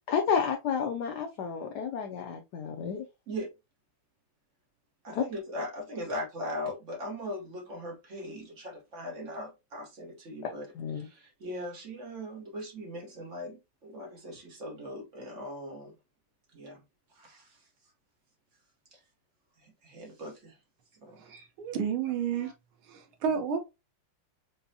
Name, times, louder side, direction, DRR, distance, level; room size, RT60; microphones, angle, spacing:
voice 1, 0.1-3.0 5.1-5.2 10.4-10.5 10.8-11.1, left 6 dB, 80° left, 0.9 m, -31 dB
voice 2, 5.0-10.6 11.0-15.9 16.5-16.8 17.2-17.6 18.9-19.0 19.6-20.6 21.0-21.5 22.4-22.5, equal, 40° right, 1.2 m, -40 dB
voice 3, 21.2-22.5 22.8-23.6, right 7 dB, 75° right, 1.7 m, -31 dB
5.3 x 2.2 x 2.7 m
omnidirectional pair, 2.4 m